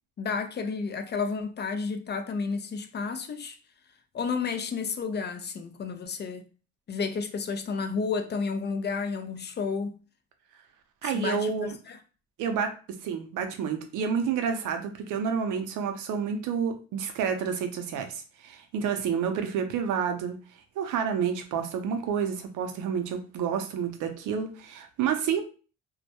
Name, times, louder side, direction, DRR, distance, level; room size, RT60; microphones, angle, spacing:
voice 1, 0.2-3.6 4.1-6.4 6.9-10.0 11.0-12.0, left 5 dB, 35° left, 0.4 m, -31 dB
voice 2, 11.0-11.7 12.4-20.3 20.8-25.4, right 7 dB, 85° right, 0.6 m, -29 dB
2.2 x 2.1 x 2.8 m
cardioid pair, 90°, 30 cm